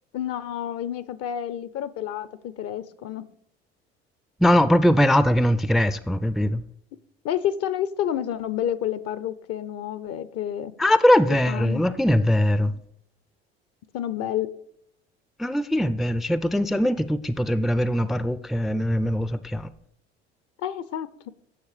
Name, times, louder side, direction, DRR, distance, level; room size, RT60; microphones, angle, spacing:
voice 1, 0.1-3.3 7.2-10.7 11.5-11.8 13.9-14.5 20.6-21.3, left 10 dB, 55° left, 0.7 m, -29 dB
voice 2, 4.4-6.6 10.8-12.7 15.4-19.7, left 1 dB, ahead, 0.4 m, -21 dB
9.5 x 6.4 x 5.0 m
hypercardioid pair, 65°, 30 cm